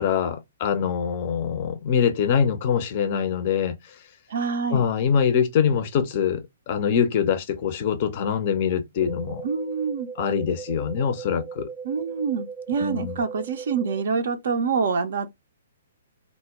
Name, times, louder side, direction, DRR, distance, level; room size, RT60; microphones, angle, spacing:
voice 1, 0.0-3.8 4.7-9.5 10.2-11.7 12.8-13.2, left 7 dB, 40° left, 0.4 m, -24 dB
voice 2, 4.3-4.8 9.4-10.1 11.8-15.3, right 5 dB, 55° right, 0.4 m, -26 dB
sound 1, 9.0-14.0, right 5 dB, 10° right, 0.6 m, -38 dB
2.0 x 2.0 x 3.3 m
figure-of-eight pair, 120°, 0 cm